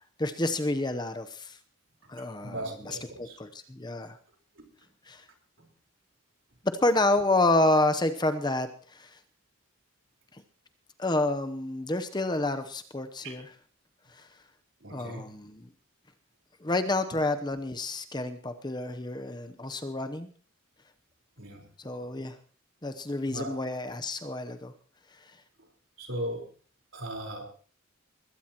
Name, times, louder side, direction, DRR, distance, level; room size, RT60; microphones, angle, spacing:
voice 1, 0.2-1.6 2.1-4.2 5.1-5.2 6.8-9.1 10.3-10.4 11.0-13.5 14.9-15.7 16.6-20.3 21.8-22.3 22.8-24.7, left 2 dB, 20° left, 9 dB, 0.8 m, -29 dB
voice 2, 2.4-3.4 4.6-4.7 13.2-13.4 14.8-15.3 21.4-21.6 23.3-23.5 26.0-26.4 26.9-27.5, right 1 dB, 65° right, 1 dB, 4.3 m, -37 dB
21.5 x 16.5 x 3.0 m, 0.43 s
head